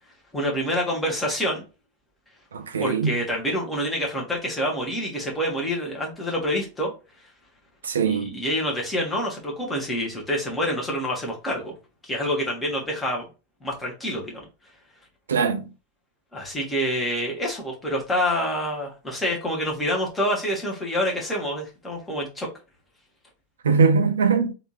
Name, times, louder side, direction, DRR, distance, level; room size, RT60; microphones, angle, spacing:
voice 1, 0.3-1.6 2.8-6.9 8.1-11.7 12.0-13.2 13.6-14.4 16.3-22.5, equal, 10° left, 1.4 m, -27 dB
voice 2, 2.5-3.2 7.8-8.3 15.3-15.6 23.6-24.5, right 5 dB, 65° right, 0.5 m, -21 dB
3.4 x 2.7 x 3.0 m
figure-of-eight pair, 90°, 0 cm